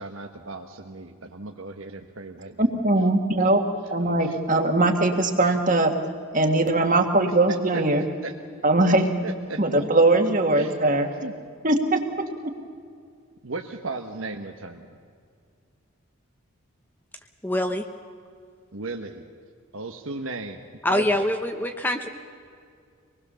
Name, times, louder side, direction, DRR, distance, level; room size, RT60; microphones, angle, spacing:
voice 1, 0.0-2.7 3.4-3.5 4.0-4.4 7.7-8.3 9.2-9.6 10.6-10.8 11.2-11.3 13.4-14.9 18.7-19.2 19.7-20.6 20.9-21.2, right 2 dB, 75° right, 3 dB, 1.2 m, -35 dB
voice 2, 2.6-3.6 3.9-5.9 6.3-8.1 8.6-9.1 9.6-11.1 11.6-12.0, right 2 dB, 35° right, 5 dB, 1.9 m, -20 dB
voice 3, 17.4-17.9 20.8-22.1, left 1 dB, 10° left, 5 dB, 0.8 m, -24 dB
26.0 x 20.0 x 6.9 m, 2.3 s
head